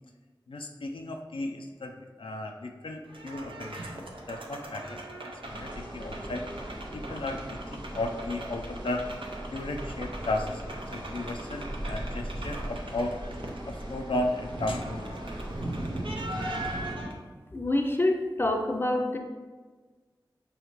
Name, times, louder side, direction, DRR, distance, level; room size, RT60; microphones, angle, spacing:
voice 1, 0.5-5.0 5.5-6.4 6.9-9.0 9.5-10.6 10.9-13.2 13.7-15.1, left 2 dB, 80° left, 3 dB, 0.4 m, -34 dB
sound 1, 3.0-17.1, right 1 dB, 80° right, 0.6 m, -40 dB
sound 2, 5.4-17.0, right 1 dB, 60° right, 0.9 m, -39 dB
voice 2, 17.5-19.2, left 1 dB, 25° left, 3 dB, 0.5 m, -26 dB
5.6 x 2.8 x 3.0 m, 1.4 s
wide cardioid pair, 45°, 9 cm